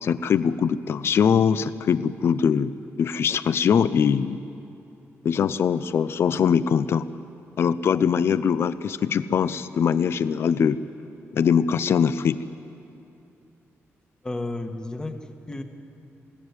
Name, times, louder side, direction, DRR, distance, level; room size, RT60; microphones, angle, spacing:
voice 1, 0.0-2.7 3.0-4.4 5.2-7.1 7.6-10.8 11.3-12.4, left 7 dB, 55° left, 14 dB, 0.5 m, -22 dB
voice 2, 14.2-15.6, left 2 dB, 15° left, 6 dB, 1.3 m, -32 dB
21.5 x 16.5 x 9.6 m, 2.7 s
wide cardioid pair, 175°, 5 cm